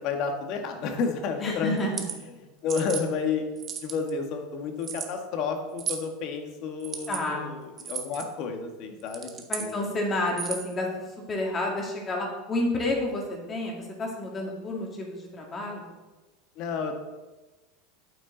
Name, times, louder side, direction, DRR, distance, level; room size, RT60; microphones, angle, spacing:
voice 1, 0.0-1.9 2.4-3.4 3.8-9.8 16.5-17.0, left 5 dB, 50° left, 5 dB, 1.5 m, -31 dB
voice 2, 1.4-2.0 7.1-7.5 9.5-10.9 11.3-15.9, left 2 dB, 20° left, 0 dB, 2.3 m, -30 dB
sound 1, 1.8-2.2 2.7-3.0 3.6-4.1 4.8-5.1 5.8-6.1 6.8-7.2 7.8-8.3 9.0-9.7 10.3-10.7, right 7 dB, 30° right, 1.0 m, -34 dB
8.6 x 8.5 x 3.9 m, 1.2 s
supercardioid pair, 140°, 0 cm